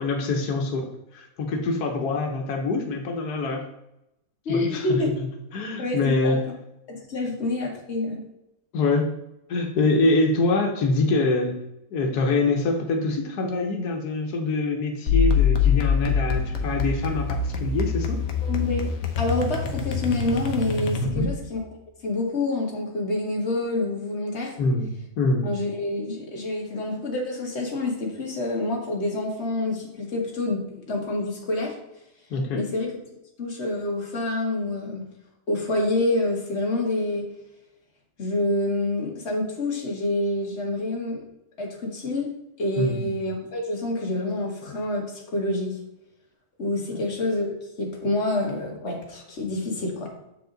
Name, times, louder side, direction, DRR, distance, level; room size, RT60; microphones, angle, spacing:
voice 1, 0.0-3.7 4.5-5.0 5.5-6.5 8.7-9.1 9.5-11.6 11.9-18.2 21.0-21.3 24.6-24.9 25.2-25.5 32.3-32.7 42.8-43.1, left 2 dB, 90° left, 3 dB, 1.4 m, -25 dB
voice 2, 4.5-5.1 5.8-6.4 6.9-8.2 18.5-18.9 19.2-21.6 22.0-24.5 25.4-31.8 32.5-32.9 33.4-35.0 35.5-37.3 38.2-41.2 41.6-42.3 42.6-45.8 46.6-47.5 47.8-50.1, left 2 dB, 45° left, -1 dB, 1.8 m, -27 dB
sound 1, 15.1-21.4, left 6 dB, 65° left, 1.3 m, -24 dB
7.3 x 4.8 x 3.9 m, 0.86 s
omnidirectional pair, 1.6 m